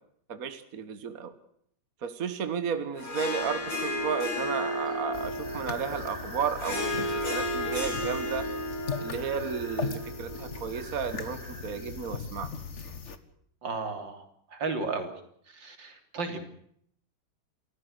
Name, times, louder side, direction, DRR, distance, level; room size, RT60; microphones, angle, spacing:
voice 1, 0.3-1.4 2.0-8.5 9.0-12.5, right 6 dB, 50° right, 10 dB, 1.8 m, -33 dB
Harp, 3.0-11.6, left 1 dB, 80° left, 6.8 m, -34 dB
Breathing, 3.4-12.4, right 1 dB, 20° right, 6.2 m, -48 dB
sound 1, 5.1-13.2, left 5 dB, 40° left, 1.8 m, -39 dB
voice 2, 13.6-14.2 14.5-15.1 15.6-16.6, right 3 dB, 80° right, 6 dB, 4.0 m, -34 dB
28.5 x 14.5 x 8.1 m, 0.68 s
omnidirectional pair, 2.0 m